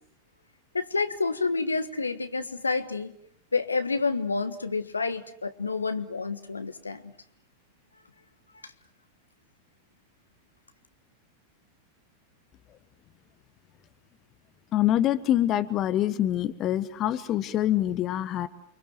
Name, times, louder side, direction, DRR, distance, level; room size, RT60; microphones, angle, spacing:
voice 1, 0.7-3.1 3.5-7.1 8.6-8.7, left 4 dB, 80° left, 10 dB, 1.5 m, -29 dB
voice 2, 14.7-18.5, left 12 dB, 35° left, 12 dB, 1.3 m, -25 dB
29.5 x 24.0 x 7.8 m, 0.65 s
figure-of-eight pair, 90°, 0 cm